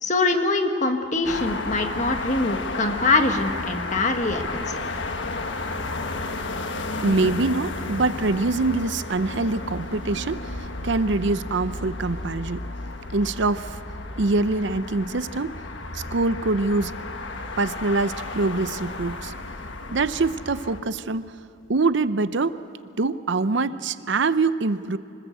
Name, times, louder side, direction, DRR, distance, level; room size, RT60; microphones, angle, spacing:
voice 1, 0.0-4.8, left 3 dB, 35° left, 5 dB, 1.6 m, -23 dB
sound 1, 1.2-20.8, left 2 dB, 65° left, 1.5 m, -33 dB
voice 2, 7.0-12.6 13.1-13.8 14.2-15.6 15.9-16.9 17.6-19.3 19.9-21.3 21.7-22.6 23.0-25.0, right 3 dB, 60° right, 13 dB, 0.7 m, -24 dB
25.5 x 20.5 x 8.1 m, 2.9 s
head